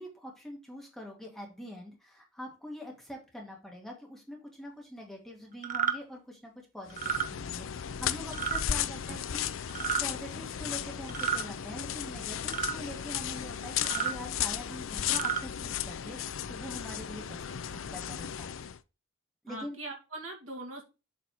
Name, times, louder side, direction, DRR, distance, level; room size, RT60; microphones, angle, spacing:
voice 1, 0.0-9.4 10.0-16.2 16.5-18.5 19.4-19.8, equal, ahead, -1 dB, 2.1 m, -44 dB
sound 1, 5.6-6.0 6.9-7.3 8.3-8.6 9.7-10.0 11.1-11.5 12.5-12.8 13.8-14.1 15.0-15.4, right 8 dB, 40° right, 0.9 m, -31 dB
sound 2, 6.9-18.8, left 9 dB, 65° left, 0.5 m, -35 dB
voice 2, 9.1-9.4 19.5-20.8, right 2 dB, 75° right, 0 dB, 2.4 m, -42 dB
7.6 x 4.0 x 4.8 m, 0.30 s
head